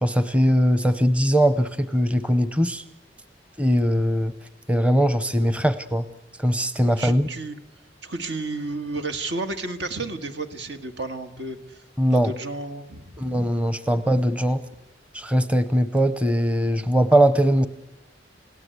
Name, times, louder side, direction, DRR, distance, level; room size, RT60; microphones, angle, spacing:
voice 1, 0.0-2.8 3.6-4.3 4.7-6.1 6.4-7.3 12.0-12.3 13.2-14.6 15.1-17.7, equal, 5° right, 12 dB, 0.8 m, -20 dB
voice 2, 7.0-7.6 8.0-11.8 12.1-13.2, right 2 dB, 75° right, 6 dB, 2.0 m, -32 dB
29.5 x 17.5 x 8.2 m, 1.0 s
head